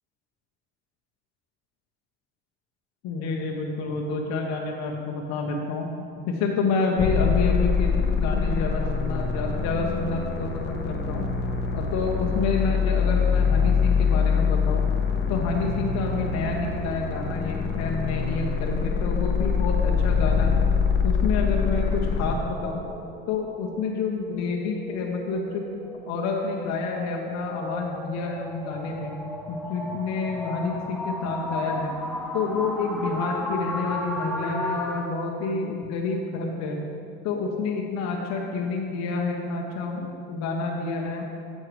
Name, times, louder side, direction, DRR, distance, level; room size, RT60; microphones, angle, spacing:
voice 1, 3.0-11.3 11.7-14.9 15.3-20.7 21.0-22.8 23.3-25.8 26.1-29.2 29.5-31.9 32.3-36.8 37.2-41.2, left 4 dB, 55° left, 0 dB, 0.9 m, -28 dB
sound 1, 7.0-22.3, left 5 dB, 30° left, 0.9 m, -24 dB
sound 2, 22.1-35.1, left 1 dB, ahead, 0.5 m, -35 dB
8.7 x 6.5 x 3.2 m, 2.5 s
supercardioid pair, 85°, 32 cm